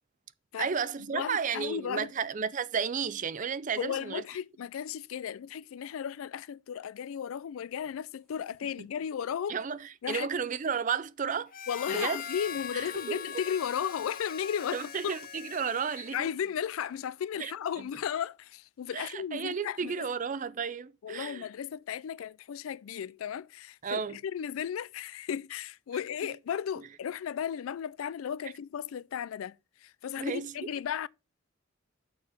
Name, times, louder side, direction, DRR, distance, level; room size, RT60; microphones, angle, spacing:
voice 1, 0.6-4.2 9.5-11.5 11.9-12.2 12.7-13.2 14.7-16.3 17.4-17.5 18.9-21.4 23.8-24.2 30.2-30.5, right 6 dB, 40° right, 0.5 m, -33 dB
voice 2, 1.1-2.1 3.7-9.6 10.0-10.3 11.7-15.1 16.1-20.1 21.0-31.1, left 8 dB, 90° left, 0.3 m, -35 dB
sound 1, 7.9-8.4 9.2-9.3 11.2-11.3 12.0-18.2, equal, ahead, 2.4 m, -55 dB
Harmonica, 11.5-16.5, left 7 dB, 45° left, 0.6 m, -41 dB
6.4 x 4.7 x 6.4 m
head